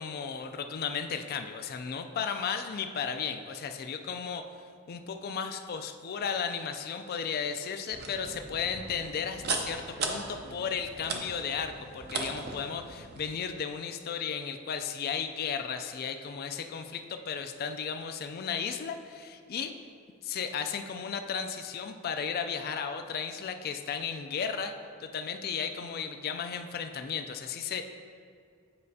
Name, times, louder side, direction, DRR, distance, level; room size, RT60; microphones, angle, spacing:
voice 1, 0.0-4.4 4.9-19.7 20.2-24.7 25.0-27.8, left 6 dB, 45° left, 7 dB, 0.3 m, -34 dB
sound 1, 7.9-13.3, right 4 dB, 45° right, 0.6 m, -37 dB
8.5 x 5.0 x 2.7 m, 2.2 s
head